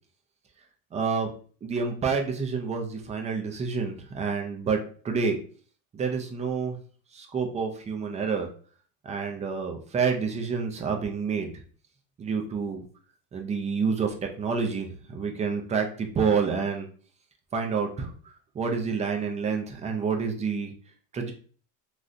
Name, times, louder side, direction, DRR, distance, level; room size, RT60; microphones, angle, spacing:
voice 1, 0.9-1.3 1.6-5.4 5.9-6.8 7.1-8.5 9.0-11.5 12.2-12.8 13.3-16.9 17.5-18.1 18.5-20.7 21.1-21.3, right 5 dB, 20° right, 3 dB, 0.5 m, -28 dB
3.1 x 2.5 x 2.6 m, 0.43 s
cardioid pair, 145°, 36 cm